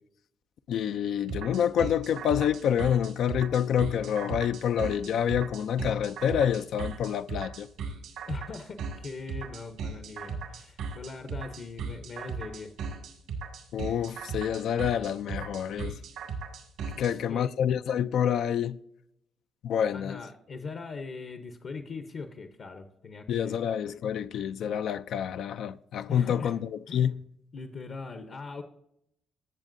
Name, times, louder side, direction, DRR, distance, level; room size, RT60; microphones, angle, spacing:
voice 1, 0.7-7.7 13.7-16.0 17.0-18.8 19.6-20.2 23.3-27.2, left 9 dB, 75° left, 0.4 m, -27 dB
sound 1, 1.3-17.1, right 5 dB, 85° right, 2.1 m, -37 dB
voice 2, 8.3-12.7 16.9-17.5 19.9-23.5 26.1-26.6 26.9-27.2 27.5-28.6, left 4 dB, 55° left, 0.8 m, -40 dB
15.0 x 7.1 x 2.6 m
cardioid pair, 95°, 0 cm